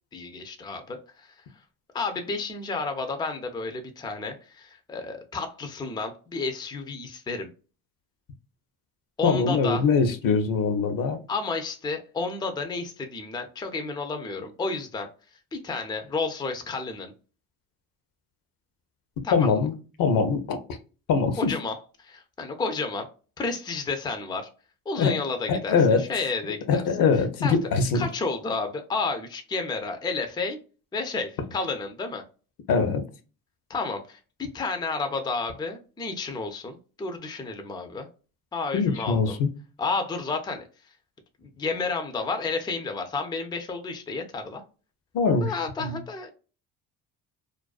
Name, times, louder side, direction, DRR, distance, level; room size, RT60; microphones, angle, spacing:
voice 1, 0.1-1.3 1.9-7.5 9.2-9.8 11.3-15.1 15.5-17.1 19.2-19.5 21.4-23.1 23.4-24.5 24.9-26.8 27.4-27.6 27.9-30.6 30.9-32.2 33.7-38.1 38.5-39.4 39.8-40.7 41.4-44.6 45.4-46.3, left 4 dB, 10° left, 0.4 m, -31 dB
voice 2, 9.2-11.2 19.3-19.7 20.0-20.8 21.1-21.5 25.0-25.2 25.5-26.0 26.7-28.1 32.7-33.0 38.7-39.5 45.1-45.5 45.8-46.0, left 5 dB, 60° left, 0.6 m, -23 dB
2.4 x 2.2 x 2.3 m
supercardioid pair, 75°, 40 cm